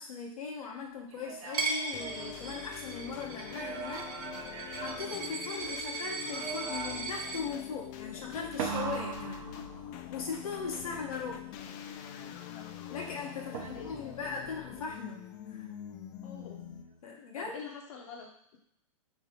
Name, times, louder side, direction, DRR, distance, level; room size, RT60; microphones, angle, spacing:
voice 1, 0.0-4.1 4.8-9.4 10.1-11.4 12.9-15.2 15.5-15.7 17.0-17.7, left 5 dB, 85° left, -1 dB, 1.0 m, -39 dB
sound 1, 1.1-3.0 3.4-5.8 6.3-7.3 8.6-10.2 13.5-14.2, right 6 dB, 60° right, 0.7 m, -40 dB
Coin (dropping), 1.5-7.4, right 3 dB, 85° right, 1.1 m, -38 dB
sound 2, 1.9-17.0, left 10 dB, 35° left, 0.3 m, -44 dB
voice 2, 13.4-13.9 16.2-16.6 17.3-18.6, left 6 dB, 65° left, -1 dB, 0.8 m, -46 dB
3.3 x 2.8 x 3.6 m, 0.74 s
hypercardioid pair, 125°, 18 cm